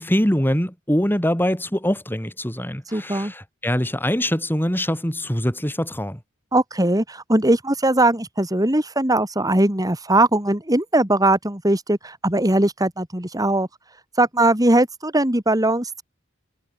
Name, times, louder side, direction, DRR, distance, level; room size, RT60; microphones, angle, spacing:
voice 1, 0.0-6.2, equal, 10° left, 6.4 m, -23 dB
voice 2, 2.9-3.3 6.5-13.7 14.2-16.0, right 1 dB, 20° right, 3.1 m, -20 dB
head